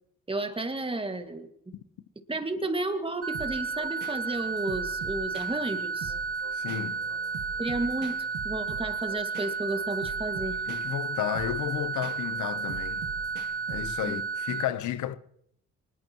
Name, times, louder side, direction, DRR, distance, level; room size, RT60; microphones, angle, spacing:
voice 1, 0.3-1.7 2.3-6.1 7.6-10.6 14.0-14.2, right 2 dB, 20° right, 2.0 m, -32 dB
sound 1, 3.2-14.6, right 4 dB, 50° right, 2.7 m, -33 dB
sound 2, 3.3-14.2, right 6 dB, 90° right, 1.9 m, -44 dB
voice 2, 6.5-7.0 10.7-13.1 13.7-15.2, left 11 dB, 75° left, 1.0 m, -32 dB
23.0 x 20.5 x 3.0 m
cardioid pair, 90°, 30 cm